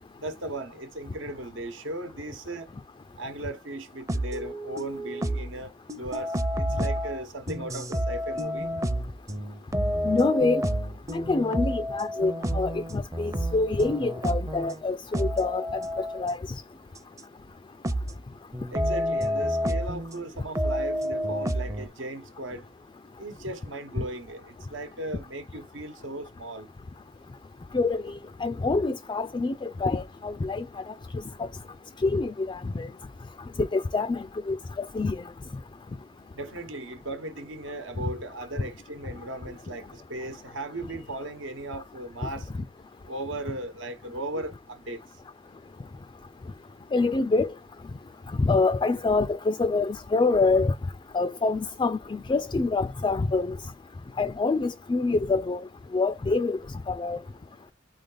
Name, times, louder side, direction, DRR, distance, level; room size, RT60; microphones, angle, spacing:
voice 1, 0.2-2.7 3.1-8.7 18.7-22.6 23.2-26.7 36.3-42.5 43.1-45.0, right 1 dB, 80° right, 1.1 m, -37 dB
sound 1, 4.1-5.6 5.9-14.8 15.1-16.2 17.2-17.3 17.8-18.2 18.5-20.2 20.6-21.9, equal, 15° right, 0.6 m, -29 dB
voice 2, 10.0-10.6 11.1-15.8 16.1-16.4 27.7-28.1 28.4-30.9 31.4-31.5 32.0-32.9 33.6-35.2 46.9-47.5 48.4-50.7 51.1-53.6 54.2-55.6 55.9-56.6 56.9-57.2, left 3 dB, 25° left, 0.3 m, -26 dB
4.0 x 3.4 x 3.9 m
head